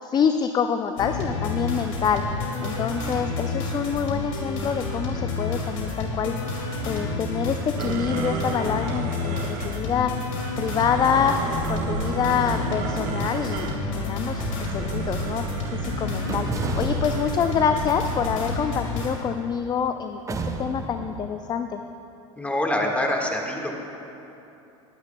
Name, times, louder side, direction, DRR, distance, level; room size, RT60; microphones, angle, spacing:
voice 1, 0.0-2.2 2.6-6.3 6.8-10.1 10.6-11.4 11.7-15.4 15.7-16.5 16.8-21.8, left 7 dB, 25° left, 7 dB, 0.4 m, -26 dB
sound 1, 1.0-19.1, left 2 dB, 75° left, 2.4 m, -29 dB
sound 2, 7.8-9.8 10.6-13.8 14.5-18.0, right 7 dB, 50° right, 1.0 m, -34 dB
sound 3, 14.1-15.5 16.3-19.7 20.3-21.3, right 3 dB, 20° right, 0.8 m, -35 dB
voice 2, 22.4-23.8, left 1 dB, 10° left, 1 dB, 1.6 m, -25 dB
22.5 x 9.6 x 2.2 m, 2.8 s
hypercardioid pair, 95°, 17 cm